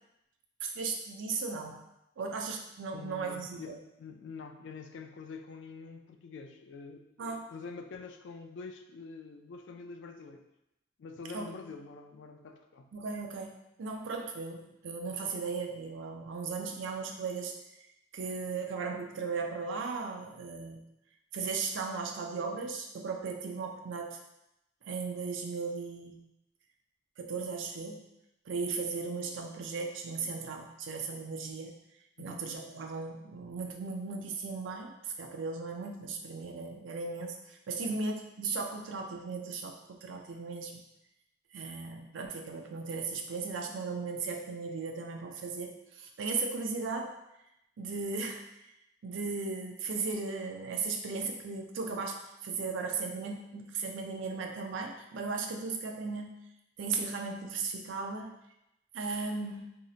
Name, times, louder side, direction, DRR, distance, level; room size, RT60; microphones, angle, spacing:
voice 1, 0.6-1.8 2.2-3.7 7.2-7.4 11.3-11.5 12.9-13.5 13.8-17.5 18.1-20.8 21.3-24.2 24.9-26.2 27.2-28.0 28.5-31.7 32.2-40.8 41.5-47.1 47.8-48.4 49.0-56.3 56.8-58.4 58.9-59.7, right 4 dB, 85° right, 3 dB, 0.4 m, -36 dB
voice 2, 2.9-10.4 11.0-12.9 32.2-32.4 37.9-38.0, left 4 dB, 70° left, 5 dB, 0.3 m, -46 dB
2.7 x 2.0 x 3.7 m, 0.87 s
head